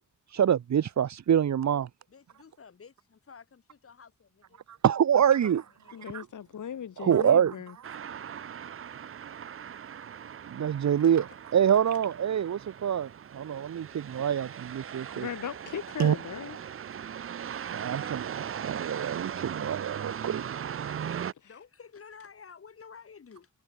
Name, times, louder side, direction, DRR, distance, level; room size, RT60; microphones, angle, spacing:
voice 1, 0.3-1.9 4.8-5.6 6.1-6.2 7.0-7.5 10.5-11.2 11.5-15.3 16.0-16.2 17.7-20.8, right 9 dB, 65° right, 1.2 m, -26 dB
voice 2, 2.1-4.6 5.4-5.5 5.8-6.1 9.8-9.9 11.0-11.4 11.9-12.0 13.9-14.0 15.9-16.0 21.4-23.5, left 6 dB, 45° left, 6.8 m, -52 dB
voice 3, 5.9-7.8 15.1-16.6 21.4-21.5, left 8 dB, 75° left, 4.1 m, -38 dB
sound 1, 7.8-21.3, right 8 dB, 45° right, 0.6 m, -39 dB
wide cardioid pair, 175°, 30 cm